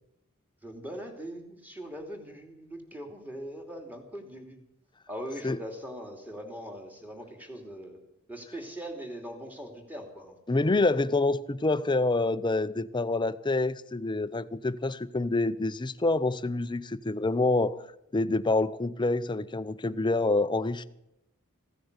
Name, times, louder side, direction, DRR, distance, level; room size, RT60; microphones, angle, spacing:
voice 1, 0.6-4.6 5.1-8.0 8.3-10.4, equal, 10° right, 2.7 m, -41 dB
voice 2, 10.5-17.8 18.1-20.8, left 2 dB, 20° left, 0.6 m, -27 dB
16.0 x 10.0 x 8.1 m
head